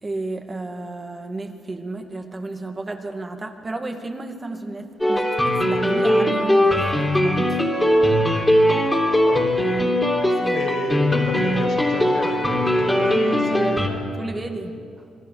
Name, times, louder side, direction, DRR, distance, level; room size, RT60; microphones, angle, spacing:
voice 1, 0.0-7.6 10.4-10.6 13.5-13.9 14.2-14.8, right 2 dB, 25° right, 4 dB, 2.3 m, -32 dB
sound 1, 5.0-13.9, equal, 10° left, 3.5 m, -20 dB
voice 2, 9.2-9.5 10.5-14.1, left 3 dB, 75° left, -1 dB, 6.4 m, -31 dB
27.0 x 21.5 x 6.8 m, 2.3 s
cardioid pair, 90°, 0 cm